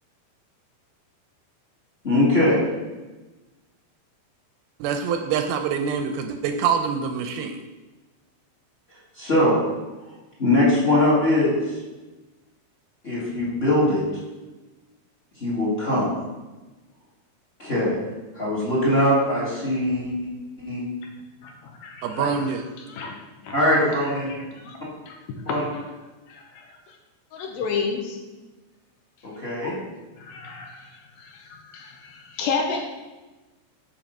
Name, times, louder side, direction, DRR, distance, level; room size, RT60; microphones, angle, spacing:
voice 1, 2.0-2.6 9.2-9.5 10.4-11.5 13.0-14.0 15.4-16.0 17.6-18.0 18.3-20.3 20.6-20.8 23.5-24.3 25.4-25.6 29.2-29.7, left 1 dB, 25° left, -7 dB, 1.5 m, -21 dB
voice 2, 4.8-7.5 22.0-22.6, right 6 dB, 80° right, 6 dB, 2.3 m, -25 dB
voice 3, 21.4-22.5 22.8-23.2 23.4-23.6 24.0-24.8 25.1-25.8 26.3-26.6 27.3-28.2 29.6-29.8 30.2-32.9, left 5 dB, 75° left, 2 dB, 2.4 m, -32 dB
9.0 x 4.7 x 5.3 m, 1.2 s
omnidirectional pair, 4.6 m